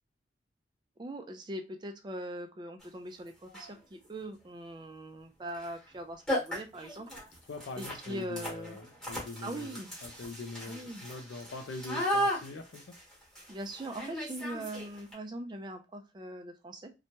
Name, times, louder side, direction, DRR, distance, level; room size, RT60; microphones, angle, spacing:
voice 1, 1.0-7.1 7.8-8.8 9.4-9.9 10.7-11.0 13.5-16.9, right 1 dB, 25° right, 0.4 m, -41 dB
sound 1, 2.8-2.9 3.4-3.8 5.5-5.7 5.9-6.0 6.3-15.1, equal, 5° left, 1.2 m, -36 dB
voice 2, 7.5-13.0, left 3 dB, 75° left, 0.4 m, -43 dB
2.8 x 2.2 x 2.8 m
head